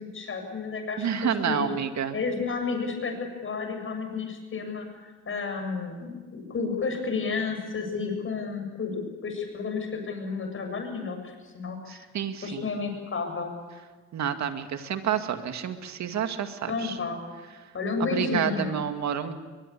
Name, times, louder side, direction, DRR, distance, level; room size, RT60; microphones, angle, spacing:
voice 1, 0.0-1.7 2.1-12.1 12.4-13.6 16.7-17.2 17.7-18.8, left 4 dB, 45° left, 4 dB, 7.7 m, -32 dB
voice 2, 1.0-2.2 11.9-12.7 14.1-17.0 18.0-19.3, right 8 dB, 65° right, 7 dB, 2.2 m, -29 dB
22.5 x 22.0 x 8.6 m, 1.3 s
cardioid pair, 90°, 30 cm